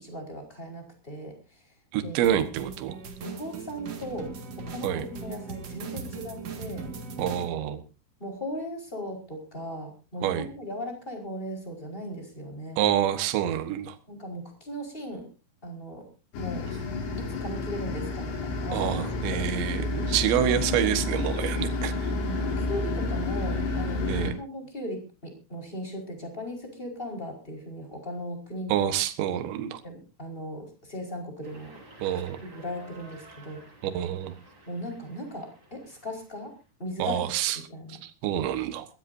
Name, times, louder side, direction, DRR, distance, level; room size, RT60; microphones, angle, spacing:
voice 1, 0.0-1.7 2.0-2.2 3.2-4.3 4.6-6.9 8.2-12.8 14.1-15.3 15.6-16.1 16.4-16.7 17.2-19.1 22.1-28.7 29.8-31.7 32.4-33.6 34.6-37.2 37.7-38.0, equal, 10° left, 2 dB, 4.5 m, -37 dB
voice 2, 1.9-3.0 4.8-5.1 7.2-7.8 10.2-10.5 12.8-14.0 18.7-22.1 24.1-24.3 28.7-29.8 32.0-32.4 33.8-34.4 37.0-37.6 37.9-38.9, right 10 dB, 70° right, 8 dB, 3.5 m, -27 dB
sound 1, 2.2-7.5, right 4 dB, 55° right, 1.9 m, -39 dB
sound 2, 16.3-24.3, left 2 dB, 65° left, 5.3 m, -30 dB
sound 3, 31.4-36.6, right 2 dB, 25° right, 5.6 m, -52 dB
22.0 x 16.0 x 2.7 m, 0.33 s
omnidirectional pair, 5.7 m